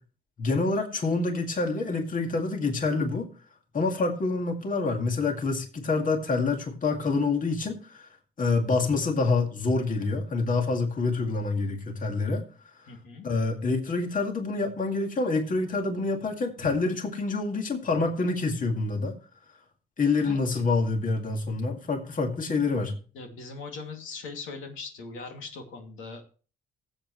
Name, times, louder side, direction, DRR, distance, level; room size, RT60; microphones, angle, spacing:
voice 1, 0.4-3.3 3.7-8.1 8.4-12.4 13.2-19.1 20.0-22.9, left 3 dB, 40° left, 3 dB, 2.1 m, -27 dB
voice 2, 12.9-13.3 16.6-16.7 20.2-20.6 23.1-26.2, left 4 dB, 85° left, 3 dB, 2.5 m, -40 dB
15.5 x 7.9 x 3.1 m, 0.37 s
cardioid pair, 90°, 20 cm